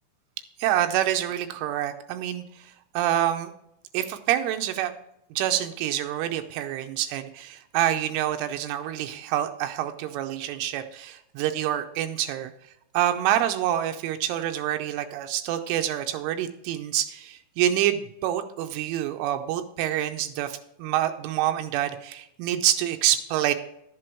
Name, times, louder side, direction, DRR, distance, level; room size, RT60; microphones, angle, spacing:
voice 1, 0.6-3.5 3.9-4.9 5.3-12.5 12.9-23.5, right 12 dB, 80° right, 7 dB, 3.0 m, -27 dB
12.0 x 7.7 x 4.4 m, 0.78 s
omnidirectional pair, 5.7 m